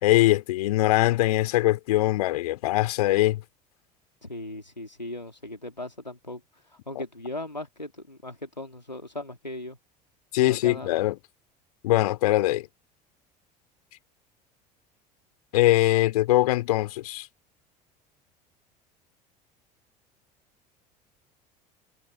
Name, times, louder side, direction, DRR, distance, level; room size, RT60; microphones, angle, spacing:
voice 1, 0.0-3.4 6.9-7.0 10.3-11.1 11.8-12.7 15.5-17.3, left 16 dB, 65° left, 3.3 m, -22 dB
voice 2, 4.2-6.4 6.9-9.8 10.4-10.9, left 1 dB, 90° left, 3.1 m, -38 dB
figure-of-eight pair, 65°, 21 cm